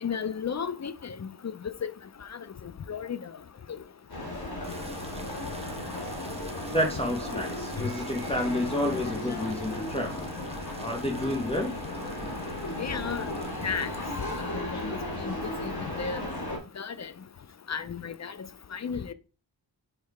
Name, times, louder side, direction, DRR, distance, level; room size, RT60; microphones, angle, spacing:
voice 1, 0.0-1.9 2.3-2.4 2.9-3.3 12.8-13.3 13.6-13.9 14.5-15.4 15.6-16.2 16.8-17.1 17.7-19.1, left 6 dB, 40° left, 0.5 m, -34 dB
sound 1, 4.1-16.6, left 1 dB, 60° left, 2.8 m, -35 dB
sound 2, 4.6-14.4, right 2 dB, 15° right, 0.9 m, -47 dB
voice 2, 6.7-10.3 10.8-11.7, left 1 dB, 15° left, 1.0 m, -29 dB
6.7 x 3.1 x 4.6 m
wide cardioid pair, 70°, 41 cm